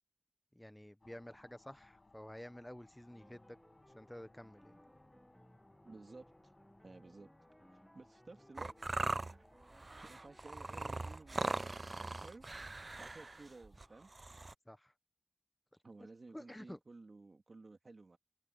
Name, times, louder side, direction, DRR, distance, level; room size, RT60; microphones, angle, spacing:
voice 1, 0.5-3.6 3.9-4.8 14.7-14.9 16.3-16.8, left 1 dB, 15° left, 0.9 m, -51 dB
sound 1, 1.0-14.1, left 3 dB, 70° left, 6.0 m, -68 dB
sound 2, 3.1-11.7, equal, ahead, 1.6 m, -64 dB
voice 2, 5.8-6.5 6.8-7.3 7.9-8.7 9.2-9.4 10.0-11.8 12.2-12.5 13.0-14.1 15.8-18.2, right 3 dB, 90° right, 2.2 m, -55 dB
sound 3, 8.6-14.5, right 2 dB, 60° right, 0.4 m, -40 dB
wide cardioid pair, 55°, 0 cm